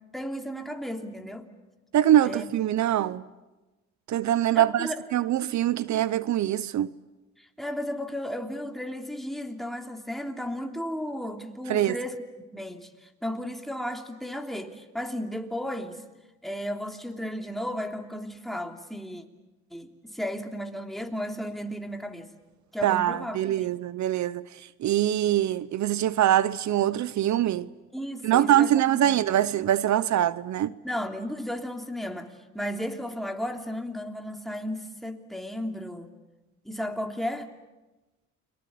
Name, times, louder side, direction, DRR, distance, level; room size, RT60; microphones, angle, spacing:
voice 1, 0.1-1.5 2.2-2.5 4.5-4.9 7.4-12.2 12.5-16.0 16.4-19.2 19.7-22.3 22.7-23.7 27.9-29.2 30.8-36.1 36.6-37.5, equal, ahead, 3.0 m, -34 dB
voice 2, 1.9-3.2 4.1-6.9 11.7-12.0 22.8-24.5 24.8-27.7 28.2-30.7, right 12 dB, 70° right, 0.8 m, -23 dB
30.0 x 23.0 x 8.6 m
cardioid pair, 90°, 30 cm